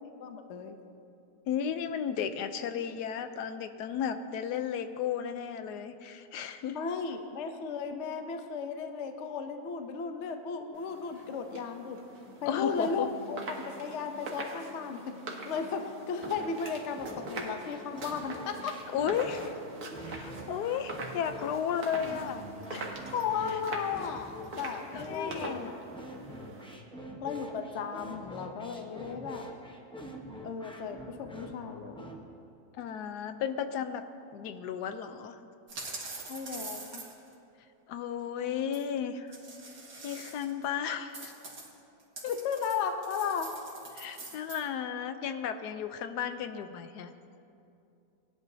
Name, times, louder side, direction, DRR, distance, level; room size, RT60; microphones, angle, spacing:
voice 1, 0.2-0.8 6.7-12.0 12.4-13.4 13.7-15.2 15.5-18.7 23.1-25.7 27.2-29.4 30.4-32.1 36.3-37.1 42.3-43.5, left 6 dB, 60° left, 6 dB, 0.8 m, -35 dB
voice 2, 1.5-6.8 12.5-13.1 18.9-19.5 20.0-22.4 22.7-23.0 24.9-25.6 32.8-34.0 34.3-35.4 37.9-39.4 40.0-41.3 43.9-47.1, left 8 dB, 85° left, 9 dB, 1.2 m, -34 dB
sound 1, 10.7-26.8, right 2 dB, 65° right, 1.7 m, -43 dB
sound 2, 16.2-32.2, equal, 5° left, 0.5 m, -45 dB
sound 3, 35.7-37.3 38.7-38.8 39.3-40.6 41.1-44.6, right 3 dB, 85° right, 2.3 m, -44 dB
19.5 x 10.0 x 2.7 m, 2.6 s
omnidirectional pair, 1.7 m